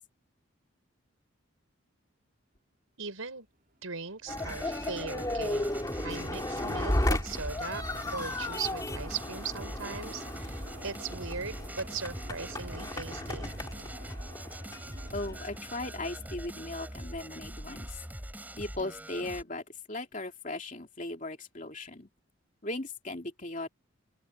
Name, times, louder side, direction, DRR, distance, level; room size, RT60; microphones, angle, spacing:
voice 1, 3.0-3.5 3.8-5.8 6.0-7.9 8.1-13.5, right 5 dB, 80° right, 5.3 m, -39 dB
sound 1, 3.9-18.4, right 1 dB, 45° right, 4.9 m, -49 dB
sound 2, 4.3-15.6, left 1 dB, 20° left, 2.1 m, -35 dB
sound 3, 4.3-19.4, right 1 dB, 10° right, 7.6 m, -43 dB
voice 2, 15.1-18.0 18.6-22.1 22.6-23.7, left 2 dB, 35° left, 3.0 m, -38 dB
open air
head